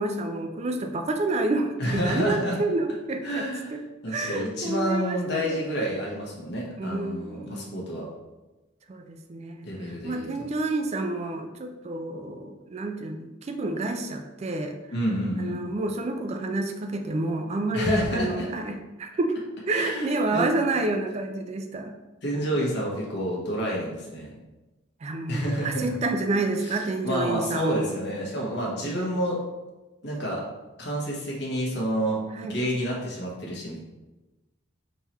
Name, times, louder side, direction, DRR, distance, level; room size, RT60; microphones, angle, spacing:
voice 1, 0.0-5.7 6.8-8.0 8.9-14.8 15.4-19.4 19.7-21.9 22.3-22.5 25.0-27.9 28.8-29.1 32.3-32.6, right 2 dB, 35° right, 5 dB, 0.3 m, -29 dB
voice 2, 1.8-2.6 3.2-8.0 9.6-10.3 14.9-15.6 17.7-18.5 19.7-20.5 22.2-24.3 25.3-25.9 26.6-26.8 27.0-29.4 30.0-30.4 30.8-33.8, equal, 60° left, -3 dB, 1.2 m, -29 dB
3.7 x 3.0 x 4.2 m, 1.1 s
head